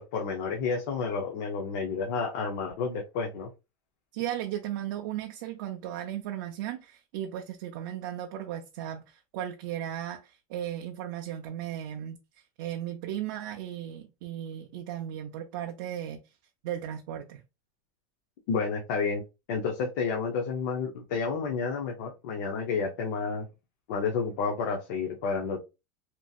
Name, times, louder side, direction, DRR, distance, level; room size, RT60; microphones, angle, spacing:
voice 1, 0.1-3.5 18.5-19.2 19.5-23.5 23.9-25.6, left 5 dB, 55° left, 0.6 m, -30 dB
voice 2, 4.1-12.2 12.6-16.3 16.6-17.4, right 11 dB, 55° right, 0.4 m, -36 dB
2.9 x 2.6 x 2.3 m
supercardioid pair, 170°, 12 cm